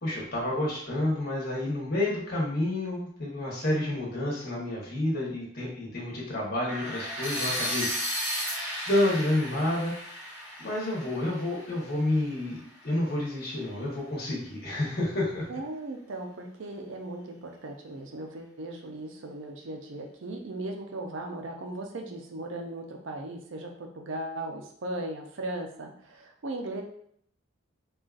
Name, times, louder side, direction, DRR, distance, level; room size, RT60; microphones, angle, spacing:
voice 1, 0.0-7.9 8.9-9.9 10.6-15.5, left 1 dB, 50° left, -4 dB, 1.0 m, -29 dB
sound 1, 6.7-12.6, equal, 10° right, 0.9 m, -34 dB
voice 2, 15.5-26.8, right 2 dB, 60° right, 3 dB, 0.5 m, -37 dB
3.8 x 2.4 x 2.4 m, 0.65 s
head